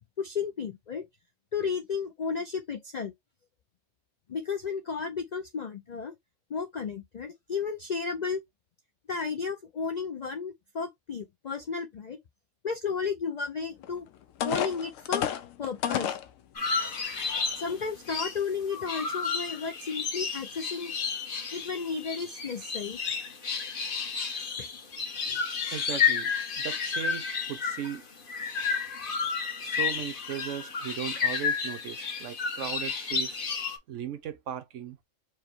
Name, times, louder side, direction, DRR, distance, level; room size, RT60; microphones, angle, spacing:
voice 1, 0.2-1.0 1.5-3.1 4.3-6.1 6.5-8.4 9.1-12.2 12.6-14.1 14.4-15.3 15.6-16.2 17.5-20.9 21.5-23.0 24.6-24.7, left 5 dB, 65° left, 0.4 m, -33 dB
sound 1, 13.8-13.9 14.4-16.3 16.9-17.0 17.5-17.7, left 9 dB, 85° left, 1.0 m, -30 dB
sound 2, 16.6-33.8, left 6 dB, 45° left, 1.0 m, -31 dB
voice 2, 25.3-28.0 29.6-33.4 33.9-35.0, right 10 dB, 75° right, 1.0 m, -37 dB
4.7 x 2.1 x 4.4 m
omnidirectional pair, 1.3 m